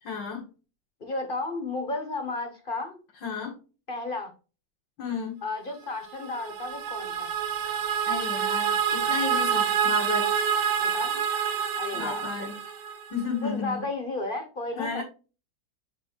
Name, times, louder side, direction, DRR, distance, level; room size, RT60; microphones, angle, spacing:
voice 1, 0.0-0.5 3.2-3.6 5.0-5.4 8.1-10.3 11.9-12.6 13.1-13.8 14.8-15.0, left 5 dB, 80° left, -2 dB, 2.3 m, -33 dB
voice 2, 1.0-3.0 3.9-4.3 5.4-7.3 10.8-11.2 11.8-12.2 13.4-15.0, left 2 dB, 30° left, 6 dB, 1.2 m, -33 dB
sound 1, 6.1-13.2, right 7 dB, 85° right, 1.6 m, -27 dB
8.2 x 3.5 x 4.5 m, 0.33 s
omnidirectional pair, 2.0 m